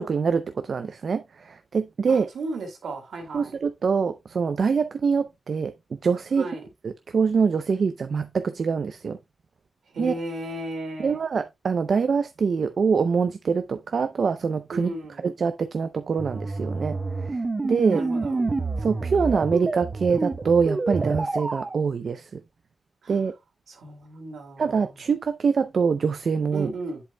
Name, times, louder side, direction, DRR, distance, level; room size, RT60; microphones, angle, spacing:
voice 1, 0.0-2.3 3.3-6.5 6.8-9.2 10.0-10.1 11.0-14.9 15.2-18.0 18.8-22.4 23.1-23.3 24.6-26.7, right 5 dB, 65° right, 0.5 m, -24 dB
voice 2, 2.1-3.5 6.3-6.6 9.9-11.2 14.7-15.3 17.9-18.4 23.0-23.1 23.7-24.9 26.5-27.0, right 2 dB, 85° right, 2.3 m, -35 dB
sound 1, 16.2-21.8, right 3 dB, 40° right, 0.8 m, -28 dB
7.9 x 7.5 x 2.2 m
cardioid pair, 55°, 0 cm